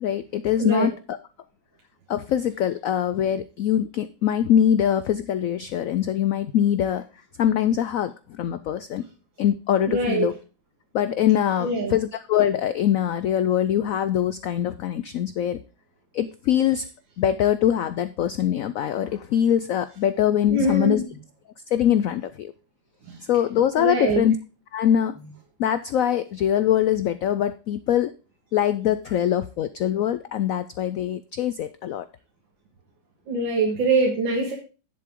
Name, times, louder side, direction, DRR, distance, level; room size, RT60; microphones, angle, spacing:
voice 1, 0.0-1.2 2.1-7.0 7.4-9.0 9.4-10.3 10.9-15.6 16.1-16.8 17.2-21.0 21.7-22.5 23.3-24.4 24.7-25.2 25.6-28.1 28.5-32.0, left 10 dB, 85° left, 13 dB, 0.7 m, -23 dB
voice 2, 9.8-10.3 11.6-11.9 20.5-21.0 23.1-23.2 23.8-24.2 33.3-34.5, right 3 dB, 80° right, -1 dB, 2.4 m, -23 dB
10.0 x 7.9 x 3.6 m, 0.33 s
omnidirectional pair, 2.0 m